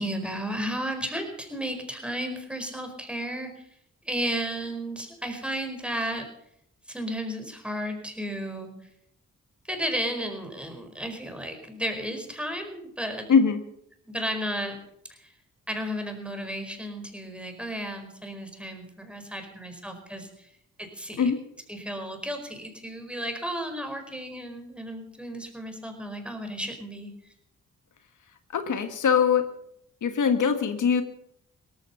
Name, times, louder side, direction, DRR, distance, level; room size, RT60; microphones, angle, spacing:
voice 1, 0.0-3.6 4.0-6.3 6.9-8.7 9.7-13.3 14.0-14.7 15.1-15.3 15.7-20.5 20.8-21.3 21.7-27.3, equal, 5° right, 5 dB, 4.8 m, -33 dB
voice 2, 13.3-13.6 21.2-21.4 28.5-29.4 30.0-31.0, left 6 dB, 75° left, 8 dB, 1.6 m, -22 dB
18.0 x 14.5 x 5.6 m, 0.76 s
cardioid pair, 65°, 31 cm